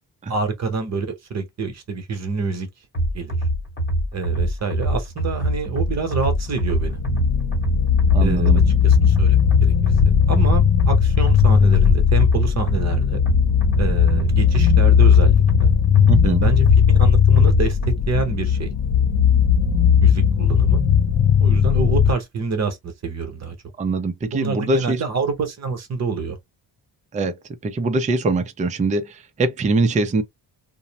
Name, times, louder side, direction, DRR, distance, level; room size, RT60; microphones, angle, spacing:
voice 1, 0.3-2.7 3.1-3.4 4.1-7.0 8.2-8.5 8.8-9.7 10.3-13.2 13.8-15.7 16.2-18.7 20.0-20.8 21.4-23.5 24.3-26.4, right 4 dB, 40° right, 0.9 m, -27 dB
sound 1, 2.9-18.0, right 1 dB, 25° left, 1.0 m, -24 dB
sound 2, 5.8-22.1, left 8 dB, 45° left, 0.4 m, -17 dB
voice 2, 8.1-8.6 16.1-16.5 23.8-25.0 27.1-27.3 27.6-30.2, right 3 dB, 20° right, 0.3 m, -22 dB
2.6 x 2.0 x 2.7 m
wide cardioid pair, 145°, 43 cm